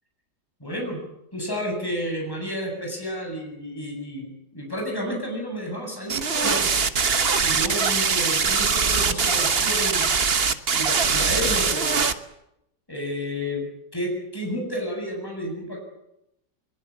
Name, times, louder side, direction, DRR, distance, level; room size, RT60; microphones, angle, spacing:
voice 1, 0.6-1.0 1.3-6.7 7.4-10.1 10.7-12.0 12.9-15.8, equal, 10° left, 1 dB, 7.6 m, -31 dB
sound 1, 6.1-12.1, right 5 dB, 40° right, 1.2 m, -22 dB
22.5 x 22.0 x 8.6 m, 0.82 s
omnidirectional pair, 1.9 m